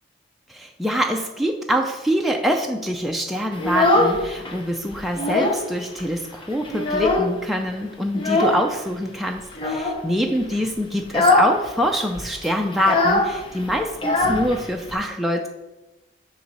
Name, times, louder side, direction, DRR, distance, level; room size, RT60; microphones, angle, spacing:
voice 1, 0.5-15.5, equal, ahead, 1 dB, 0.3 m, -25 dB
Child speech kid speaking, 3.5-4.6 4.9-5.7 6.0-6.1 6.4-7.5 8.2-8.6 9.5-10.0 10.4-10.6 11.0-11.6 11.8-11.9 12.1-14.9, left 2 dB, 25° left, 0.7 m, -21 dB
7.5 x 3.0 x 5.4 m, 1.1 s
head